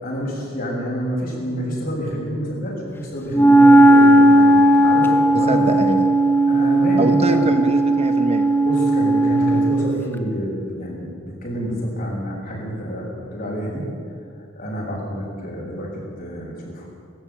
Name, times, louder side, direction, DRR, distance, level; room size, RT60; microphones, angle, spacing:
voice 1, 0.0-5.8 6.5-7.4 8.6-11.2 11.4-13.8 14.6-16.9, equal, 45° left, -3 dB, 7.3 m, -28 dB
Wind instrument woodwind instrument, 3.3-10.0, right 1 dB, 10° left, 1.0 m, -15 dB
voice 2, 5.5-6.0 7.0-8.5, right 1 dB, 30° right, 7 dB, 1.2 m, -23 dB
18.5 x 16.0 x 9.0 m, 2.5 s
head